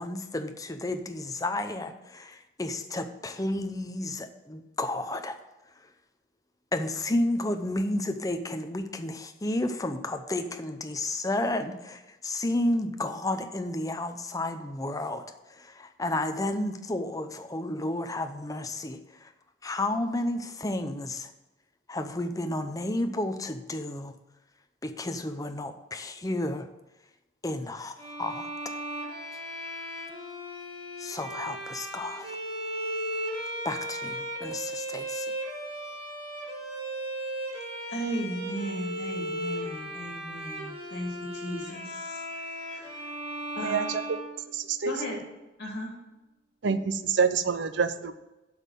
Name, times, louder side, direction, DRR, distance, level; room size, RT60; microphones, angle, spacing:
voice 1, 0.0-5.4 6.7-19.3 19.6-21.3 21.9-24.1 24.8-26.7 27.4-28.5 31.0-32.3 33.6-35.3, left 1 dB, 20° left, 7 dB, 0.7 m, -32 dB
Bowed string instrument, 28.0-45.0, right 1 dB, 30° right, 2.0 m, -36 dB
voice 2, 37.9-43.0 43.5-43.9 44.8-45.2 45.6-45.9, equal, 60° left, -1 dB, 2.8 m, -36 dB
voice 3, 43.6-44.0 44.5-44.9 46.6-48.1, right 5 dB, 65° right, 11 dB, 0.6 m, -27 dB
7.9 x 5.6 x 7.4 m, 1.0 s
head